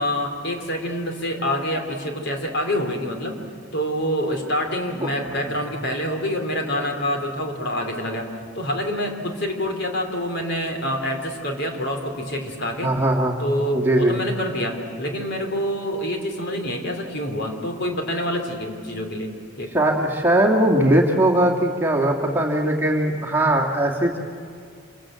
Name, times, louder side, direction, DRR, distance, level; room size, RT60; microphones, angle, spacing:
voice 1, 0.0-3.4 3.7-8.3 8.6-12.9 13.4-19.7, equal, 55° left, 3 dB, 3.6 m, -26 dB
voice 2, 12.8-13.4 13.7-14.1 19.7-24.2, right 1 dB, 10° right, -1 dB, 2.2 m, -20 dB
27.5 x 25.0 x 7.8 m, 2.3 s
head